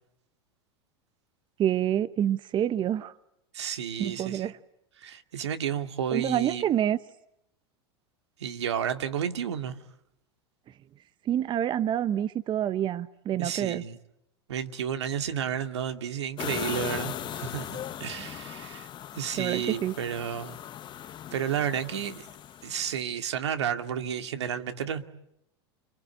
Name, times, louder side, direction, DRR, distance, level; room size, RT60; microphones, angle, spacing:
voice 1, 1.6-3.1 4.0-4.6 6.1-7.0 11.2-13.8 19.4-19.9, right 10 dB, 35° right, 1.0 m, -27 dB
voice 2, 3.5-4.4 5.0-6.7 8.4-9.8 13.4-14.0 14.5-18.9 19.1-20.6 21.3-22.3 22.6-25.0, right 8 dB, 85° right, 2.3 m, -32 dB
sound 1, 16.4-23.0, left 11 dB, 35° left, 1.1 m, -38 dB
29.5 x 24.0 x 8.4 m
hypercardioid pair, 105°, 14 cm